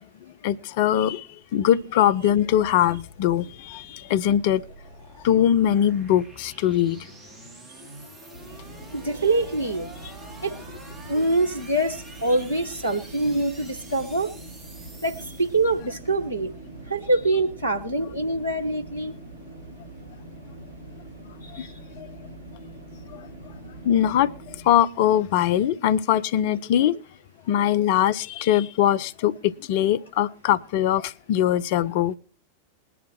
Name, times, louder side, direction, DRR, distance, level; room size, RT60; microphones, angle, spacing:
voice 1, 0.4-1.3 1.5-4.6 5.2-7.0 23.8-24.3 24.6-27.0 27.5-32.1, left 11 dB, 50° left, 0.6 m, -21 dB
sound 1, 1.9-16.2, right 2 dB, 20° right, 3.0 m, -48 dB
sound 2, 8.3-24.6, right 2 dB, 55° right, 5.4 m, -43 dB
voice 2, 8.9-9.9 10.4-10.5 11.1-14.3 15.0-16.5 16.9-19.2 21.4-21.7, right 2 dB, 90° left, 1.1 m, -24 dB
20.5 x 11.0 x 3.0 m
figure-of-eight pair, 90°, 0 cm